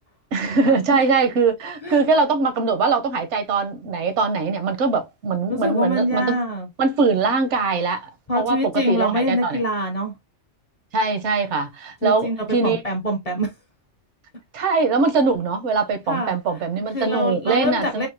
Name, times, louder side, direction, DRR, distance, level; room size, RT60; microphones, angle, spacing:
voice 1, 0.3-6.3 6.8-9.6 10.9-12.8 14.5-18.1, right 4 dB, 80° right, 0.9 m, -22 dB
voice 2, 5.5-6.7 8.3-10.1 12.0-13.5 16.1-16.3 16.9-18.1, equal, 40° left, 0.6 m, -24 dB
3.5 x 2.1 x 2.5 m
omnidirectional pair, 1.2 m